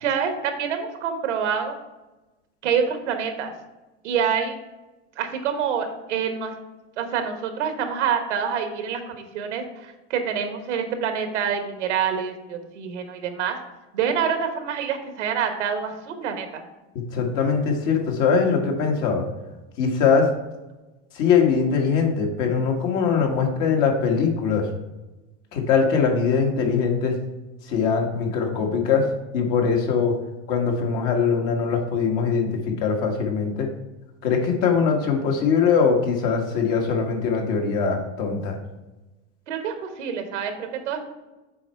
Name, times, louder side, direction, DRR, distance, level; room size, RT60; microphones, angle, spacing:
voice 1, 0.0-1.8 2.6-3.5 4.0-4.6 5.2-6.5 7.0-13.6 13.9-16.6 39.5-41.0, right 7 dB, 90° right, 6 dB, 1.2 m, -26 dB
voice 2, 17.1-19.3 19.8-20.3 21.1-24.7 25.5-27.1 27.6-29.1 29.3-30.1 30.5-33.7 34.2-38.5, left 5 dB, 60° left, 2 dB, 1.6 m, -22 dB
6.9 x 4.4 x 4.5 m, 1.1 s
supercardioid pair, 105°, 35 cm